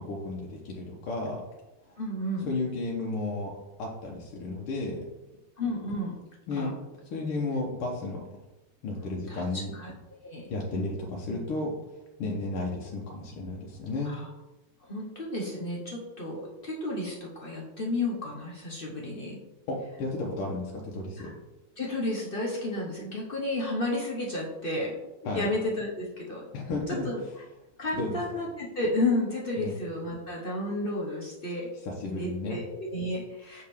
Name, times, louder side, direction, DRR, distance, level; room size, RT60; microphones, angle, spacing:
voice 1, 0.0-1.4 1.9-2.0 2.5-5.0 6.5-6.8 7.1-8.3 8.8-9.7 10.5-11.7 12.2-14.1 19.7-21.3 25.3-25.5 26.5-27.1 27.9-28.2 29.6-29.7 31.8-32.6, left 2 dB, 85° left, -2 dB, 1.9 m, -33 dB
voice 2, 2.0-2.5 5.6-6.2 6.6-6.7 9.3-9.4 9.7-9.9 10.2-10.5 14.0-14.3 14.9-19.4 21.2-21.3 21.8-25.0 25.3-26.5 26.9-27.2 27.8-31.7 32.0-33.6, left 1 dB, 45° left, -3 dB, 0.7 m, -32 dB
7.1 x 4.8 x 3.5 m, 1.0 s
omnidirectional pair, 2.4 m